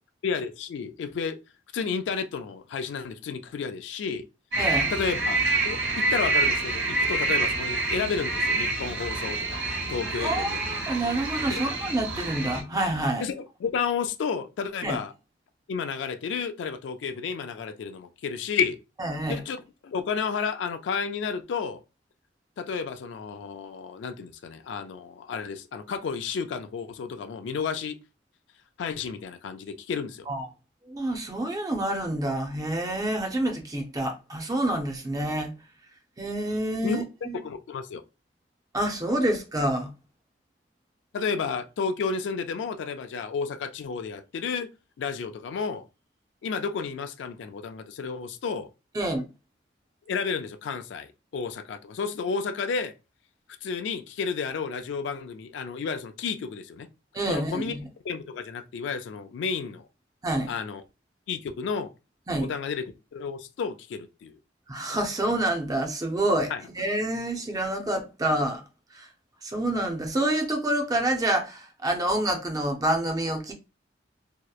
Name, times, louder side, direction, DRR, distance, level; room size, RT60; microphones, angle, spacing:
voice 1, 0.2-1.4 1.7-4.2 4.9-9.6 9.9-10.6 11.5-11.6 13.2-15.1 15.7-18.8 19.3-21.8 22.6-28.0 28.8-30.3 36.8-37.0 37.3-38.0 41.1-44.7 45.0-45.9 46.4-48.7 50.1-52.9 53.6-56.9 57.3-57.7 58.0-59.9 60.5-60.8 61.3-61.9 62.4-64.3 66.5-66.6, left 5 dB, 75° left, 0.3 m, -31 dB
sound 1, 4.5-12.6, right 2 dB, 85° right, 1.0 m, -27 dB
voice 2, 4.6-4.9 10.2-13.2 14.8-15.0 19.0-19.4 30.3-30.5 30.9-35.5 36.2-37.4 38.7-39.9 48.9-49.3 57.1-57.8 60.2-60.5 62.3-62.5 64.7-68.6 68.9-69.1 69.4-73.5, right 1 dB, 20° right, 0.4 m, -27 dB
2.8 x 2.0 x 2.3 m
head